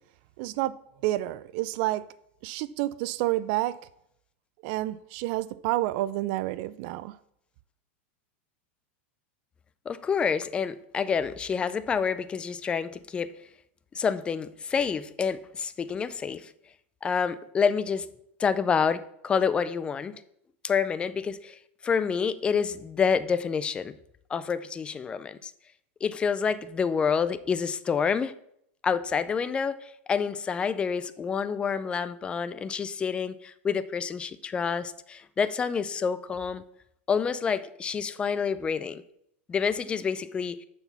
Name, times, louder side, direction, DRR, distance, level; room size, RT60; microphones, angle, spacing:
voice 1, 0.4-0.7 1.0-2.0 2.4-3.8 4.6-7.2, right 16 dB, 50° right, 17 dB, 0.4 m, -29 dB
voice 2, 9.9-13.3 13.9-16.5 17.0-18.1 18.4-20.2 20.6-21.6 21.8-23.9 24.3-25.5 26.0-28.3 28.8-36.6 37.1-39.0 39.5-40.7, left 6 dB, 15° left, 14 dB, 0.4 m, -28 dB
7.1 x 6.0 x 5.6 m, 0.74 s
supercardioid pair, 150°, 7 cm